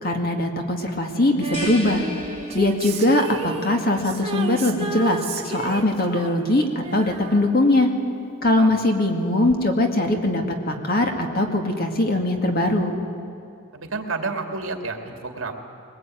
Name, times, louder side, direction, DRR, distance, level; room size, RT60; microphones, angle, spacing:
voice 1, 0.0-2.0 2.5-5.2 5.5-7.9 8.4-12.9, left 1 dB, 45° left, 3 dB, 2.2 m, -21 dB
Female singing, 1.4-8.4 9.5-9.6, right 2 dB, 30° right, 2.1 m, -32 dB
sound 1, 1.5-3.2, left 1 dB, 25° left, 5.4 m, -36 dB
voice 2, 13.7-15.5, right 3 dB, 65° right, 4 dB, 2.5 m, -30 dB
22.5 x 20.5 x 9.2 m, 2.6 s
head